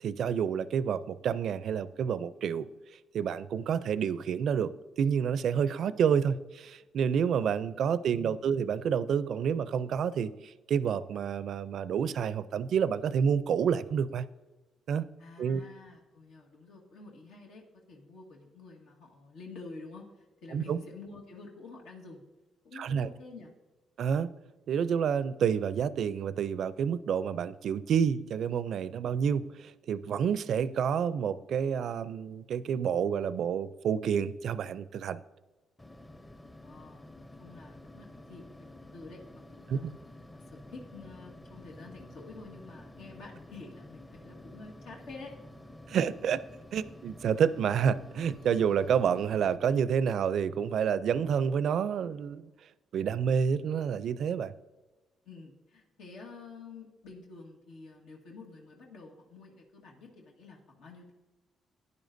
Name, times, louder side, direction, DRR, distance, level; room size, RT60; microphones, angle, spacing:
voice 1, 0.0-2.7 3.1-4.7 5.0-14.3 14.9-15.1 15.4-15.6 20.5-20.8 22.8-23.1 24.0-24.3 24.7-35.2 39.7-39.9 45.9-46.4 46.7-52.5 52.9-54.5, right 7 dB, 65° right, 16 dB, 0.4 m, -29 dB
voice 2, 15.2-22.2 22.6-23.5 36.6-39.9 40.3-45.3 55.2-61.1, left 3 dB, 85° left, 0 dB, 1.5 m, -49 dB
sound 1, 35.8-49.6, left 1 dB, 15° left, 0.7 m, -50 dB
12.0 x 9.7 x 2.6 m, 1.2 s
cardioid pair, 90°, 0 cm